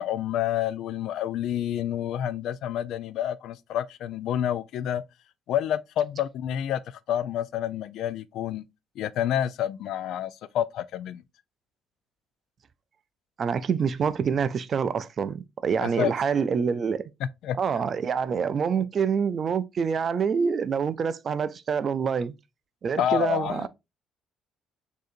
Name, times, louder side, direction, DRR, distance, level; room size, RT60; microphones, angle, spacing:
voice 1, 0.0-5.0 5.5-6.8 7.1-8.6 9.0-11.2 15.8-16.1 17.4-17.6 23.0-23.7, left 11 dB, 70° left, 0.3 m, -28 dB
voice 2, 13.4-17.1 17.6-22.3 22.8-23.7, right 6 dB, 35° right, 0.3 m, -26 dB
6.4 x 2.7 x 2.4 m
cardioid pair, 145°, 0 cm